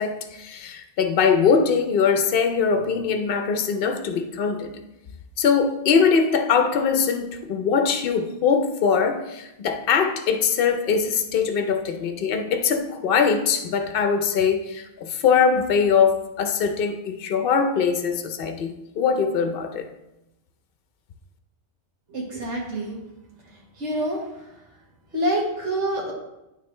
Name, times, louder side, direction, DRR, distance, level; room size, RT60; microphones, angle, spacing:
voice 1, 0.0-4.7 5.4-19.9, left 6 dB, 55° left, 7 dB, 0.8 m, -22 dB
voice 2, 22.1-23.0 23.8-24.2 25.1-26.1, right 1 dB, 75° right, -3 dB, 1.7 m, -26 dB
11.0 x 3.7 x 3.2 m, 0.92 s
omnidirectional pair, 1.2 m